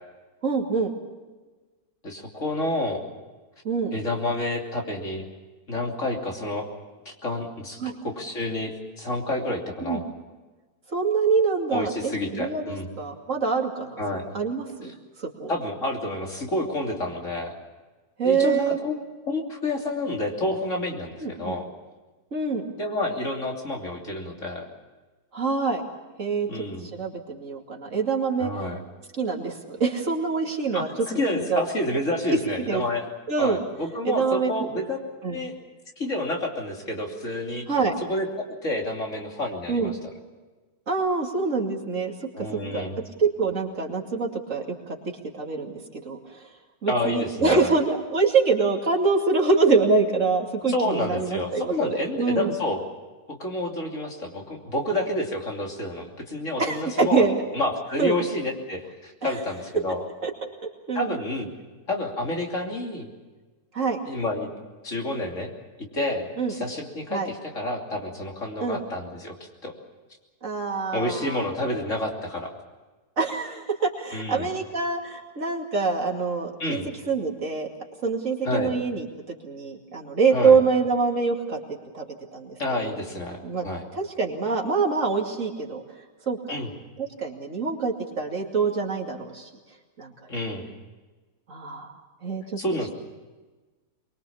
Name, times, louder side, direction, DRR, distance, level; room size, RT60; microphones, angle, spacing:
voice 1, 0.4-0.9 3.6-3.9 7.8-7.9 9.8-10.0 10.9-14.0 14.3-14.9 15.2-15.5 18.2-18.8 21.2-21.6 22.3-22.6 25.3-25.8 26.2-26.5 26.9-28.5 29.2-30.9 31.3-31.6 32.3-32.4 32.7-32.8 33.3-33.6 34.0-34.5 35.2-35.4 37.7-37.9 39.7-39.9 40.9-45.0 45.3-45.8 46.0-46.4 46.8-52.5 56.6-57.4 58.0-58.2 60.2-60.3 60.9-61.1 63.7-64.0 66.4-66.5 67.1-67.3 68.6-68.8 70.4-71.4 73.2-77.7 78.0-79.1 79.4-82.0 82.3-83.0 83.4-83.6 83.9-85.8 86.3-86.6 87.0-89.5 90.0-90.1 91.5-91.9 92.2-92.4, right 4 dB, 55° right, 0 dB, 2.8 m, -25 dB
voice 2, 2.0-3.0 3.9-5.2 5.7-6.7 7.0-10.0 11.7-12.9 14.0-14.3 14.8-14.9 15.5-17.5 18.2-21.6 22.8-24.7 26.5-26.9 28.4-28.8 30.7-33.1 33.4-35.0 35.2-35.5 36.0-37.8 38.1-40.0 42.3-42.9 46.9-47.7 50.7-52.8 53.3-57.2 57.5-60.0 60.9-61.5 61.9-63.1 64.1-64.5 64.8-65.5 65.9-69.3 69.6-69.7 70.9-72.5 74.1-74.5 76.6-76.9 78.4-78.7 80.3-80.6 82.6-83.8 86.5-86.7 90.3-90.6 92.6-92.9, left 1 dB, 50° left, 0 dB, 3.4 m, -29 dB
23.5 x 22.5 x 7.2 m, 1.3 s
omnidirectional pair, 1.6 m